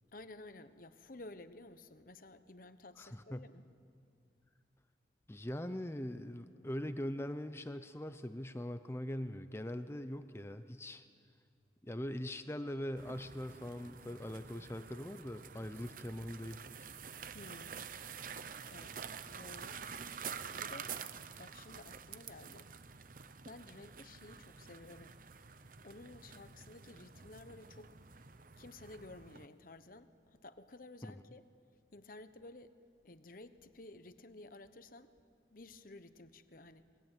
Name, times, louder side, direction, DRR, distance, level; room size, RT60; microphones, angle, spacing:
voice 1, 0.1-3.7 17.3-17.9 18.7-19.8 20.6-21.0 21.3-23.0 23.5-25.2 25.8-28.0 28.6-31.4 31.9-32.7 33.0-35.1 35.5-36.9, left 2 dB, 50° left, 11 dB, 1.1 m, -53 dB
voice 2, 3.0-3.5 5.3-11.0 11.8-16.8 31.0-31.1, left 1 dB, 15° left, 10 dB, 0.7 m, -42 dB
sound 1, 13.0-29.5, right 6 dB, 45° right, 0.8 m, -48 dB
sound 2, 24.9-29.8, right 1 dB, 70° right, 5.3 m, -73 dB
29.5 x 21.5 x 9.1 m, 2.3 s
head